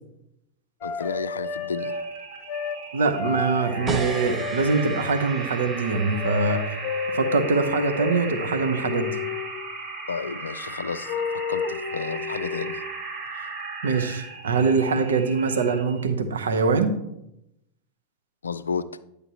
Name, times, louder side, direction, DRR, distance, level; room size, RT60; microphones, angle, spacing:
voice 1, 0.8-2.0 10.1-12.8 18.4-18.9, left 5 dB, 75° left, 0.3 m, -32 dB
sound 1, 0.8-2.1 2.5-2.8 3.1-5.0 6.2-9.6 11.1-12.8, left 5 dB, 40° left, 0.7 m, -31 dB
sound 2, 1.4-16.0, right 3 dB, 40° right, 1.5 m, -37 dB
voice 2, 2.9-6.6 7.1-9.2 13.3-13.5 13.8-16.9, right 4 dB, 65° right, 0.8 m, -23 dB
sound 3, 3.9-9.1, right 3 dB, 20° right, 0.7 m, -36 dB
9.9 x 6.8 x 2.9 m
figure-of-eight pair, 90°, 0 cm